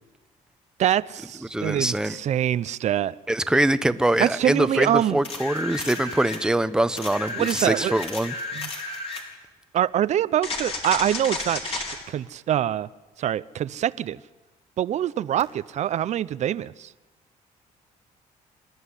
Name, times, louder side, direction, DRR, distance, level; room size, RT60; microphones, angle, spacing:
voice 1, 0.8-3.2 4.2-5.2 7.3-7.9 8.5-8.7 9.7-12.9 13.2-14.2 14.8-16.9, right 11 dB, 55° right, 18 dB, 0.6 m, -25 dB
voice 2, 1.5-2.2 3.3-8.3, right 1 dB, 5° right, 12 dB, 0.9 m, -23 dB
sound 1, 5.2-6.4 7.0-9.3 10.4-12.0 15.4-15.5, left 3 dB, 45° left, 4.2 m, -32 dB
26.0 x 12.5 x 9.9 m, 1.2 s
cardioid pair, 110°, 14 cm